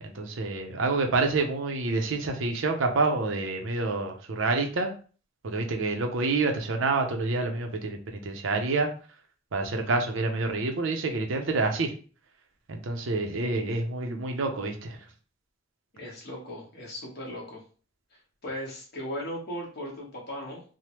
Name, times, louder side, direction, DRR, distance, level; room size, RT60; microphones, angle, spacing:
voice 1, 0.0-4.9 5.4-8.9 9.5-11.9 12.7-15.0, right 3 dB, 70° right, 4 dB, 0.6 m, -28 dB
voice 2, 15.9-17.6 18.1-20.6, equal, 55° left, -2 dB, 1.1 m, -37 dB
3.2 x 2.1 x 2.9 m, 0.39 s
head